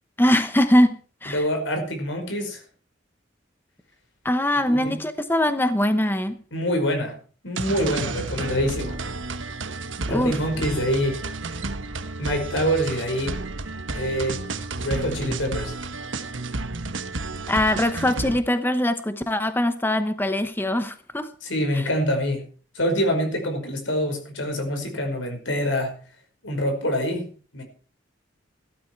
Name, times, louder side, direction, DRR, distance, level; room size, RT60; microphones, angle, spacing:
voice 1, 0.2-1.5 4.2-6.4 10.1-10.4 17.5-21.3 21.7-21.9, left 1 dB, 10° left, 9 dB, 0.9 m, -22 dB
voice 2, 1.3-2.6 4.7-5.0 6.5-7.2 7.4-9.0 10.1-11.2 12.2-13.4 13.9-14.4 14.8-15.7 21.4-22.4 22.8-26.0 26.4-27.3 27.5-27.6, equal, 85° left, 5 dB, 5.2 m, -25 dB
sound 1, 7.6-18.4, right 3 dB, 85° right, 1.3 m, -31 dB
16.0 x 13.0 x 4.7 m, 0.40 s
head